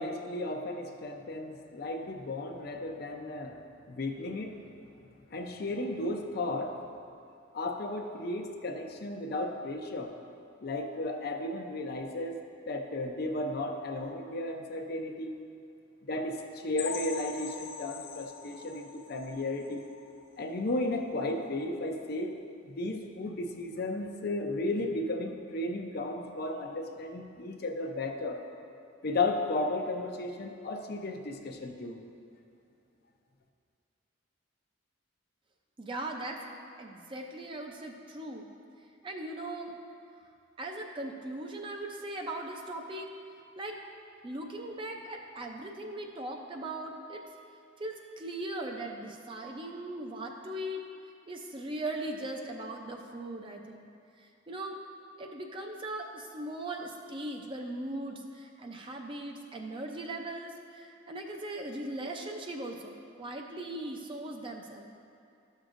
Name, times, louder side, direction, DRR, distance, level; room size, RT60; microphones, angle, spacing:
voice 1, 0.0-3.6 3.9-4.6 5.3-6.8 7.5-10.2 10.6-15.4 16.1-19.9 20.4-22.3 22.8-28.4 29.0-32.0, left 2 dB, 50° left, 3 dB, 0.6 m, -34 dB
sound 1, 16.8-20.4 20.8-21.0 21.3-21.4 21.9-22.0, left 6 dB, 90° left, 0.9 m, -43 dB
voice 2, 35.8-36.5 36.8-38.5 39.0-39.8 40.6-43.1 43.6-43.8 44.2-47.2 47.8-50.8 51.3-53.9 54.2-54.8 55.2-64.9, right 1 dB, 25° right, 2 dB, 0.5 m, -39 dB
12.0 x 6.4 x 2.5 m, 2.6 s
head